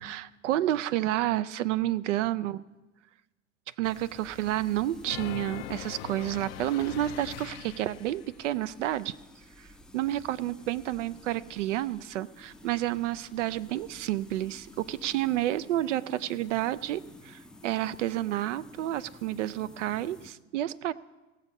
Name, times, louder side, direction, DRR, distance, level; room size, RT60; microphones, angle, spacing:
voice 1, 0.0-2.6 3.8-9.2 9.6-9.7 9.9-20.9, right 13 dB, 75° right, 16 dB, 0.6 m, -30 dB
sound 1, 3.8-20.3, left 1 dB, ahead, 0.5 m, -52 dB
sound 2, 5.0-8.2, left 16 dB, 60° left, 0.5 m, -41 dB
17.0 x 7.1 x 5.4 m, 1.1 s
hypercardioid pair, 100°, 37 cm